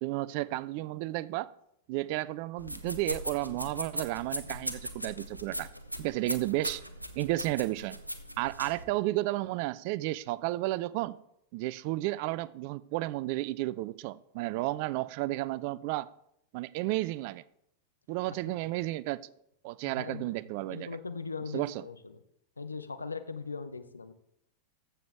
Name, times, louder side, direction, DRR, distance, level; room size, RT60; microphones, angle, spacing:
voice 1, 0.0-1.5 1.9-5.7 6.0-6.8 7.2-8.0 8.4-11.2 11.5-16.1 16.5-17.4 18.1-19.3 19.6-20.9 21.5-21.8, right 18 dB, 45° right, 0.3 m, -32 dB
sound 1, 2.6-8.8, equal, 90° right, 0.7 m, -39 dB
voice 2, 19.8-20.4 20.7-22.0 22.6-24.1, left 4 dB, 80° left, 0.7 m, -39 dB
14.5 x 6.9 x 3.5 m
figure-of-eight pair, 90°, 0 cm